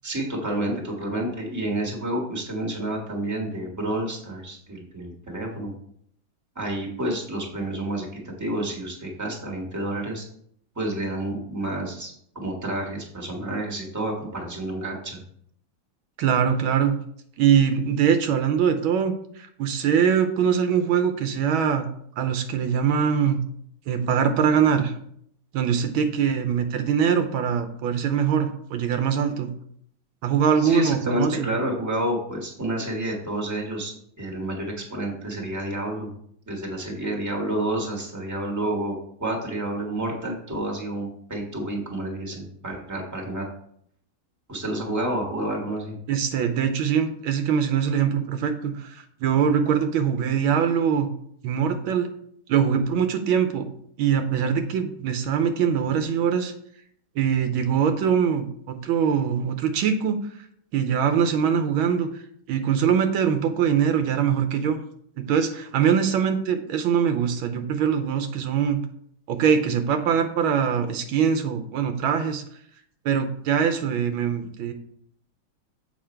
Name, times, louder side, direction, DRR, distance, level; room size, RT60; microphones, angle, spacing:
voice 1, 0.0-5.7 6.5-8.1 8.4-10.2 10.7-15.2 30.6-33.9 34.2-36.1 36.5-43.4 44.5-45.9, right 1 dB, 10° right, 0 dB, 1.4 m, -29 dB
voice 2, 16.2-17.0 17.4-21.8 22.2-23.4 23.9-25.0 25.5-29.5 30.2-31.5 46.1-51.1 51.4-52.1 52.5-53.7 54.0-56.5 57.2-60.2 60.7-62.2 62.5-64.8 65.2-68.8 69.3-72.4 73.0-74.7, right 7 dB, 80° right, 7 dB, 1.5 m, -22 dB
7.3 x 5.2 x 4.4 m, 0.67 s
omnidirectional pair, 2.3 m